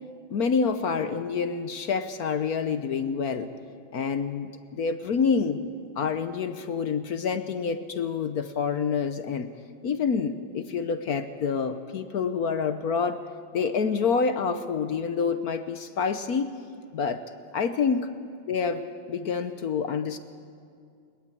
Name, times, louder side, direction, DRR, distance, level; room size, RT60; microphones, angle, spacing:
voice 1, 0.3-3.5 3.9-5.6 6.0-9.5 9.8-13.2 13.5-16.5 16.9-17.2 17.5-18.1 18.5-20.2, left 5 dB, 60° left, 10 dB, 1.1 m, -27 dB
21.5 x 20.5 x 8.5 m, 2.3 s
omnidirectional pair, 2.2 m